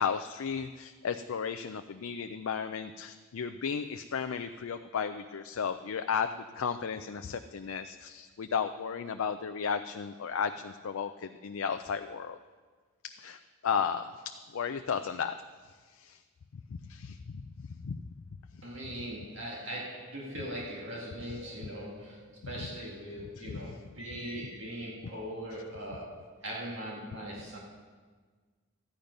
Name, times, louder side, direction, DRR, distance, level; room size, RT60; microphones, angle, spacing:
voice 1, 0.0-12.4 13.0-15.4 15.9-16.2 16.9-18.0 22.6-22.7 23.4-23.6, left 6 dB, 75° left, 8 dB, 0.4 m, -34 dB
voice 2, 18.6-27.6, right 1 dB, 55° right, -3 dB, 1.9 m, -40 dB
13.5 x 10.5 x 5.3 m, 1.5 s
head